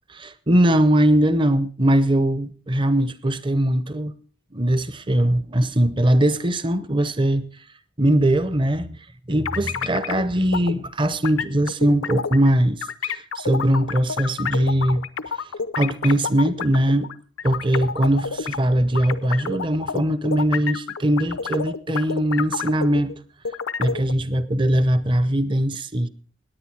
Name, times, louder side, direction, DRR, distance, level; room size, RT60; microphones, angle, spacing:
voice 1, 0.1-4.1 4.5-7.5 8.0-15.1 15.8-17.1 17.4-23.2 23.8-26.1, right 1 dB, 25° right, 0.8 m, -21 dB
sound 1, 9.5-10.2 10.5-10.7 11.2-12.5 12.8-18.6 19.0-23.2 23.5-24.1, left 6 dB, 75° left, 0.7 m, -29 dB
17.5 x 10.0 x 4.7 m
head